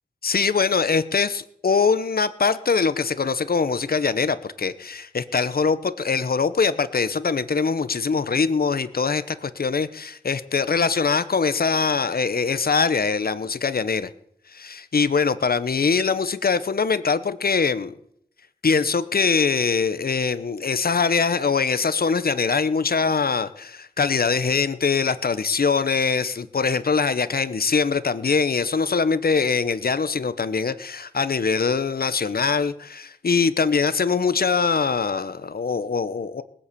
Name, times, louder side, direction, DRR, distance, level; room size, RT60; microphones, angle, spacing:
voice 1, 0.2-14.1 14.5-17.9 18.6-36.4, left 5 dB, 65° left, 14 dB, 1.0 m, -22 dB
19.5 x 8.7 x 8.4 m, 0.70 s
wide cardioid pair, 75°, 17 cm